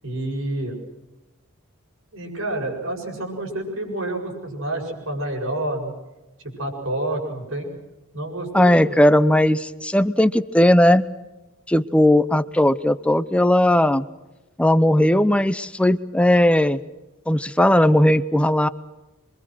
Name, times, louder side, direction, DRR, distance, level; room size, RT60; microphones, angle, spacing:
voice 1, 0.0-0.8 2.1-5.9 6.6-7.7 8.1-9.0, right 1 dB, 65° right, 2 dB, 7.6 m, -28 dB
voice 2, 8.5-11.1 11.7-14.1 14.6-16.8 17.3-18.7, left 1 dB, 5° left, 12 dB, 0.8 m, -17 dB
27.0 x 24.0 x 6.4 m, 1.1 s
head